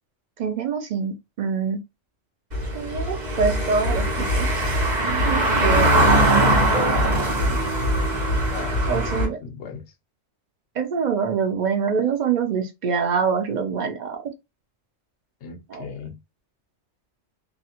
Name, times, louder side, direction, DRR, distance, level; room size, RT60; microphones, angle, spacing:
voice 1, 0.4-1.8 2.7-4.0 4.3-4.5 5.0-7.6 8.9-9.4 10.8-14.3 15.7-15.9, right 6 dB, 60° right, 0.4 m, -25 dB
Car passing by / Engine, 2.5-9.3, right 1 dB, 40° right, 0.9 m, -21 dB
voice 2, 8.5-9.9 15.4-16.2, left 4 dB, 65° left, 0.9 m, -36 dB
2.4 x 2.4 x 2.8 m
omnidirectional pair, 1.3 m